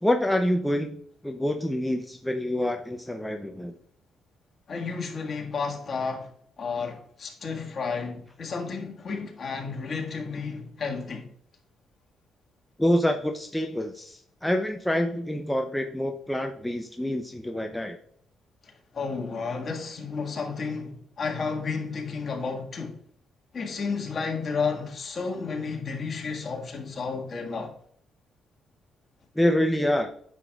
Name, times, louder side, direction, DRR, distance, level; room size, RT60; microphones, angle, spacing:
voice 1, 0.0-3.7 12.8-18.0 29.4-30.1, left 1 dB, 5° left, 0.6 m, -26 dB
voice 2, 4.7-6.3 6.6-11.3 18.6-23.0 23.5-27.7, left 5 dB, 45° left, 1.7 m, -32 dB
9.7 x 6.7 x 2.4 m
cardioid pair, 90°, 0 cm